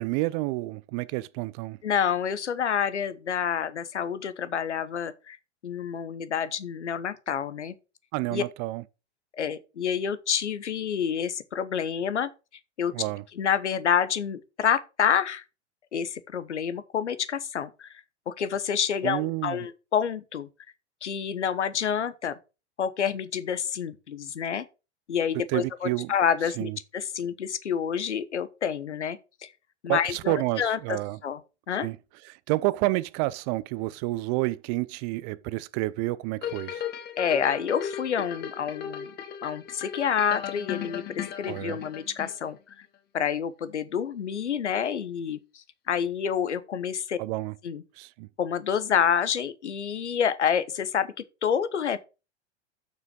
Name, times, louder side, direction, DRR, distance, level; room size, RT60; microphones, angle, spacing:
voice 1, 0.0-1.8 8.1-8.8 12.9-13.2 19.0-19.6 25.5-26.1 26.6-26.8 29.9-31.2 31.8-32.0 32.3-36.8 41.5-41.8 47.2-47.5 48.0-48.3, right 19 dB, 35° right, 0.5 m, -29 dB
voice 2, 1.8-5.4 5.6-7.7 8.3-8.4 9.4-12.3 12.8-12.9 13.4-15.4 15.9-17.9 18.3-20.5 21.0-22.4 22.8-24.6 25.1-29.5 29.8-31.4 31.7-31.9 37.2-39.1 39.4-42.6 43.1-47.2 47.6-47.8 48.4-51.1 51.4-52.0, left 7 dB, 80° left, 1.1 m, -28 dB
sound 1, 36.4-42.7 43.2-43.3, left 9 dB, 30° left, 1.2 m, -36 dB
7.2 x 6.1 x 5.2 m
figure-of-eight pair, 100°, 34 cm